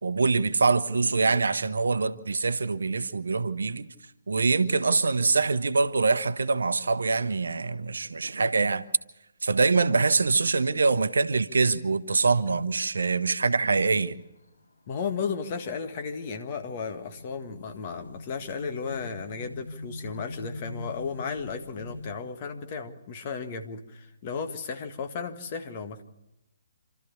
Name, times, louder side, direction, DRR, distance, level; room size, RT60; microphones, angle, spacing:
voice 1, 0.0-3.9 4.3-8.8 9.4-14.2, right 4 dB, 70° right, 0.9 m, -24 dB
sound 1, 13.9-22.1, left 2 dB, 70° left, 7.5 m, -43 dB
voice 2, 14.9-26.0, left 5 dB, 35° left, 1.8 m, -34 dB
27.5 x 13.0 x 7.1 m
figure-of-eight pair, 130°, 0 cm